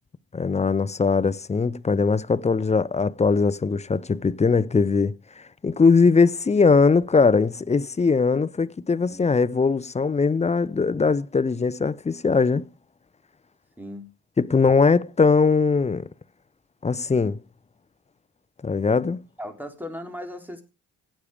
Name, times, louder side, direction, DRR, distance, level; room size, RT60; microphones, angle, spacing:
voice 1, 0.3-5.1 5.6-12.6 14.4-16.1 16.8-17.4 18.6-19.2, left 4 dB, 20° left, 0.7 m, -20 dB
voice 2, 13.8-14.1 19.4-20.6, left 1 dB, 5° right, 3.9 m, -37 dB
17.0 x 8.7 x 5.0 m
cardioid pair, 90°, 30 cm